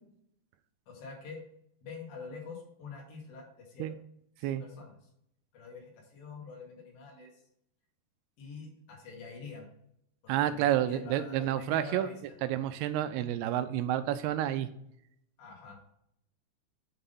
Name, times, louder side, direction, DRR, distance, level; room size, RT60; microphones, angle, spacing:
voice 1, 0.9-1.4 1.8-3.9 4.5-4.9 5.5-7.3 8.4-9.7 10.2-12.2 15.4-15.8, left 4 dB, 85° left, -2 dB, 4.5 m, -46 dB
voice 2, 10.3-12.1 12.4-14.7, right 12 dB, 80° right, 11 dB, 2.4 m, -29 dB
9.0 x 4.0 x 5.4 m, 0.72 s
omnidirectional pair, 4.8 m